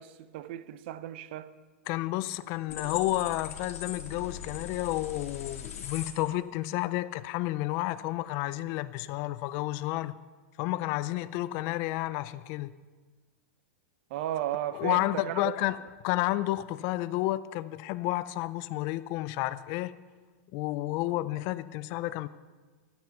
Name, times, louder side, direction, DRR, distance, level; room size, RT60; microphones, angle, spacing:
voice 1, 0.0-1.5 14.1-15.4, right 12 dB, 50° right, 0.6 m, -35 dB
voice 2, 1.9-10.1 10.6-12.7 14.7-15.8 16.0-19.9 20.5-22.3, left 17 dB, 35° left, 0.3 m, -31 dB
sound 1, 2.7-6.1, left 8 dB, 90° left, 2.2 m, -40 dB
12.5 x 10.5 x 6.9 m
supercardioid pair, 160°, 8 cm